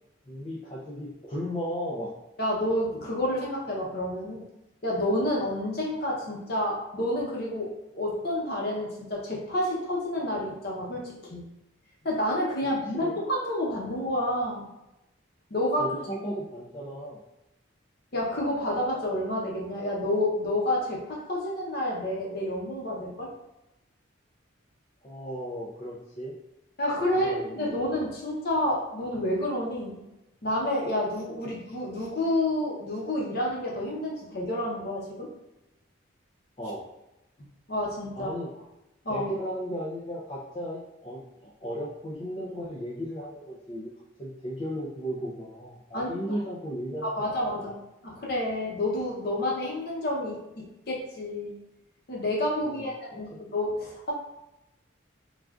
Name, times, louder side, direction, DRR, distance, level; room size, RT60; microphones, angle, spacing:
voice 1, 0.3-2.1 12.9-13.2 15.8-17.2 25.0-26.3 27.2-27.8 36.6-36.9 38.2-38.5 39.1-43.9 44.2-47.2 47.5-47.7 52.6-52.9, equal, 25° left, -6 dB, 0.4 m, -35 dB
voice 2, 2.4-4.4 4.8-11.5 12.0-14.7 15.5-16.0 18.1-23.3 26.8-30.0 30.4-35.3 37.7-38.3 39.0-39.3 45.9-46.4 47.0-47.7 48.0-51.6 52.1-54.1, left 1 dB, 50° left, -3 dB, 0.7 m, -29 dB
3.3 x 2.4 x 2.4 m, 0.94 s
head